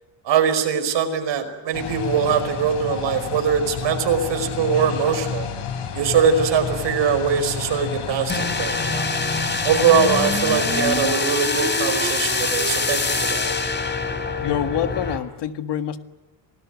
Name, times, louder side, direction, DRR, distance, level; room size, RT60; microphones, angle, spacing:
voice 1, 0.3-5.5 5.9-9.1 9.6-13.5, right 7 dB, 60° right, 7 dB, 5.2 m, -22 dB
sound 1, 1.7-11.2, left 6 dB, 85° left, 6.4 m, -31 dB
sound 2, 8.3-15.2, left 3 dB, 20° left, 3.1 m, -24 dB
voice 2, 14.4-16.0, left 10 dB, 55° left, 10 dB, 1.8 m, -26 dB
28.0 x 19.5 x 9.4 m, 1.1 s
cardioid pair, 140°, 49 cm